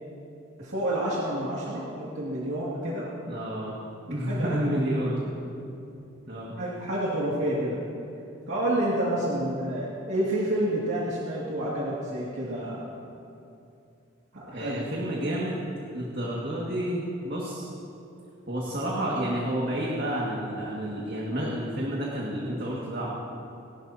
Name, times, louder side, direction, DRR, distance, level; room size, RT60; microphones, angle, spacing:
voice 1, 0.6-3.1 4.3-4.6 6.6-7.8 8.5-12.9 14.3-14.8, right 1 dB, 85° right, -7 dB, 2.3 m, -29 dB
voice 2, 3.3-3.7 4.1-5.3 6.3-6.6 14.5-15.7 15.9-17.7 18.5-23.1, right 1 dB, 50° right, -5 dB, 1.9 m, -30 dB
29.0 x 11.5 x 2.8 m, 2.7 s
head